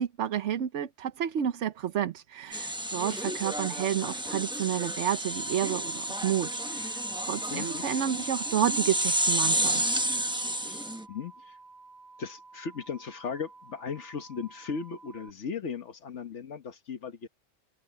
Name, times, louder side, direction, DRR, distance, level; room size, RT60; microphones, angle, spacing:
voice 1, 0.0-9.8, right 10 dB, 85° right, 1.1 m, -30 dB
sound 1, 2.5-11.0, right 1 dB, 5° right, 0.7 m, -31 dB
sound 2, 5.3-15.3, right 3 dB, 65° left, 3.1 m, -52 dB
voice 2, 7.5-7.8 10.6-11.6 12.2-17.3, left 6 dB, 80° left, 1.5 m, -37 dB
omnidirectional pair, 1.2 m